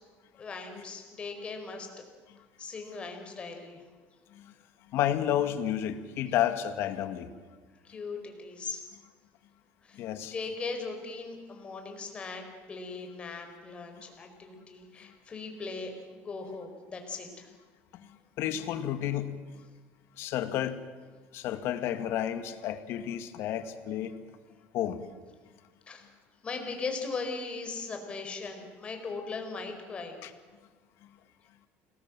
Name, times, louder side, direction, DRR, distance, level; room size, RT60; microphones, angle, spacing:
voice 1, 0.4-1.9 2.6-3.8 7.8-8.9 9.8-10.0 10.3-12.4 12.7-17.5 25.9-26.0 26.4-30.2, left 4 dB, 25° left, 4 dB, 4.9 m, -39 dB
voice 2, 4.9-7.3 9.9-10.3 18.0-18.1 18.4-19.4 20.2-20.8 21.3-24.1 24.7-25.0 30.2-30.3, left 11 dB, 60° left, 10 dB, 2.2 m, -31 dB
29.5 x 20.5 x 7.8 m, 1.5 s
cardioid pair, 155°, 5 cm